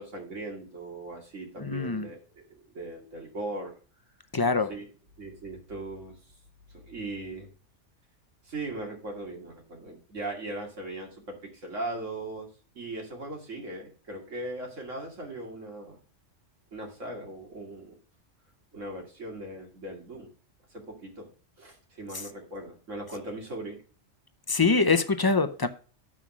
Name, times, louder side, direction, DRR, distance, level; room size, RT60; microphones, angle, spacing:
voice 1, 0.0-3.7 4.7-4.9 5.2-6.2 6.7-7.5 8.4-12.5 12.8-16.0 16.7-17.9 18.7-20.3 20.7-21.3 21.6-23.8, right 2 dB, 75° right, 2.7 m, -39 dB
voice 2, 1.6-2.1 4.3-4.7 22.1-22.3 24.5-25.7, left 4 dB, 30° left, 0.4 m, -24 dB
7.5 x 6.1 x 6.0 m
omnidirectional pair, 1.3 m